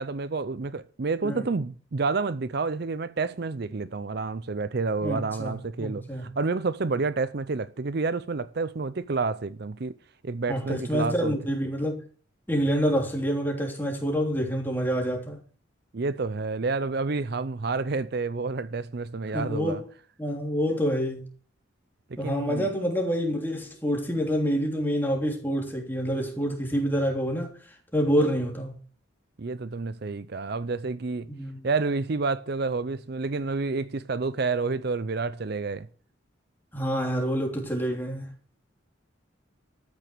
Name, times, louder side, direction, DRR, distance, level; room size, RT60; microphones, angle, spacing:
voice 1, 0.0-9.9 10.2-11.4 15.9-19.8 20.7-20.8 22.1-22.7 29.4-31.3 31.6-35.9, right 4 dB, 50° right, 0.5 m, -29 dB
voice 2, 5.0-6.3 10.5-12.0 12.5-15.4 19.3-19.9 20.2-21.3 22.2-27.5 27.9-28.8 31.3-31.6 36.7-38.3, equal, 10° left, 3.2 m, -27 dB
13.5 x 9.5 x 6.1 m
head